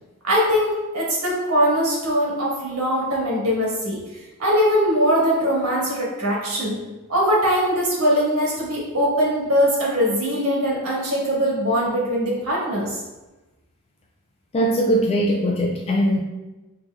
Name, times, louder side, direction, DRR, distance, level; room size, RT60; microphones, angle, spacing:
voice 1, 0.2-4.0 4.4-6.8 7.1-13.0, equal, 75° right, -4 dB, 1.3 m, -21 dB
voice 2, 14.5-16.2, equal, 25° left, -1 dB, 0.3 m, -20 dB
5.4 x 2.8 x 2.2 m, 1.1 s
head